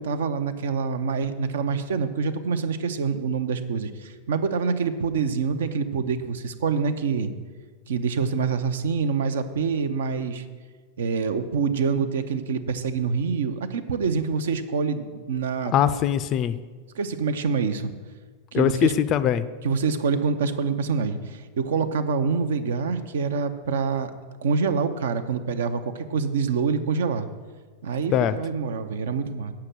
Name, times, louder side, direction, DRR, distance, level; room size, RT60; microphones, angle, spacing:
voice 1, 0.0-7.3 7.9-10.4 11.0-16.0 16.9-17.9 18.5-18.9 19.6-24.1 24.4-27.3 27.8-29.5, right 5 dB, 60° right, 10 dB, 0.6 m, -26 dB
voice 2, 15.7-16.6 18.5-19.4 28.1-28.4, left 10 dB, 35° left, 14 dB, 0.4 m, -21 dB
8.7 x 5.8 x 7.6 m, 1.5 s
figure-of-eight pair, 90°, 0 cm